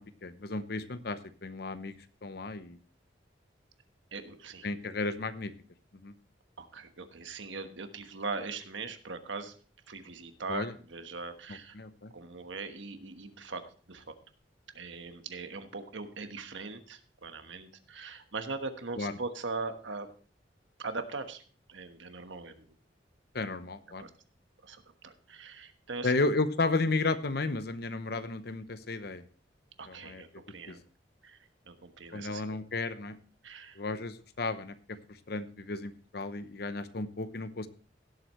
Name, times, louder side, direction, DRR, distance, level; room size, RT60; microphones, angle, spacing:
voice 1, 0.0-1.9 2.2-2.8 4.6-5.5 6.0-6.1 10.5-10.7 11.7-12.1 19.0-19.1 23.3-24.1 26.0-29.2 29.9-30.2 30.7-30.8 32.1-33.2 33.8-35.0 35.3-37.7, left 3 dB, 55° left, 12 dB, 0.8 m, -33 dB
voice 2, 4.1-4.7 6.6-9.6 9.9-11.8 12.1-14.1 14.7-20.1 20.8-21.4 21.7-22.7 24.0-24.1 24.6-26.1 29.8-30.8 31.2-31.4 31.7-32.5 33.4-33.8, right 4 dB, 85° right, 8 dB, 1.3 m, -40 dB
17.0 x 7.9 x 3.1 m, 0.40 s
head